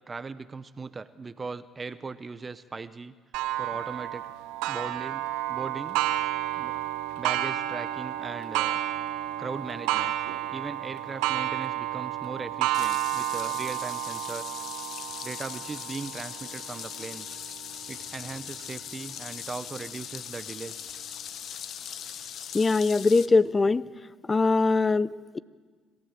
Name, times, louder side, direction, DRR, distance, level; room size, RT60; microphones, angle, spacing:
voice 1, 0.1-3.1 3.6-4.2 4.7-6.0 6.5-6.7 7.2-8.8 9.4-10.2 10.5-14.5 15.2-17.4 17.9-20.9, right 4 dB, 30° right, 14 dB, 0.8 m, -38 dB
Clock, 3.3-18.6 19.2-19.3 19.9-20.0 20.9-21.0, right 13 dB, 80° right, 0.9 m, -31 dB
sound 1, 12.7-23.3, left 9 dB, 60° left, 1.0 m, -40 dB
voice 2, 22.5-23.8 24.3-25.4, left 3 dB, 30° left, 19 dB, 0.7 m, -22 dB
25.5 x 15.0 x 7.6 m, 1.5 s
hypercardioid pair, 60°, 0 cm